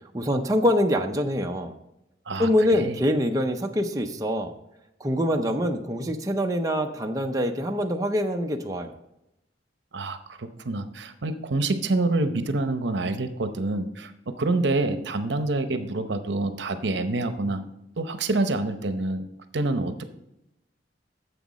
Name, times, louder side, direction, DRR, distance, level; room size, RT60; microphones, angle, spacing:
voice 1, 0.1-1.7 2.4-4.5 5.0-8.9, equal, 20° right, 3 dB, 0.6 m, -24 dB
voice 2, 2.3-3.0 9.9-17.6 18.0-19.3 19.5-20.0, right 2 dB, 75° right, 9 dB, 0.8 m, -27 dB
10.0 x 7.1 x 4.2 m, 0.86 s
head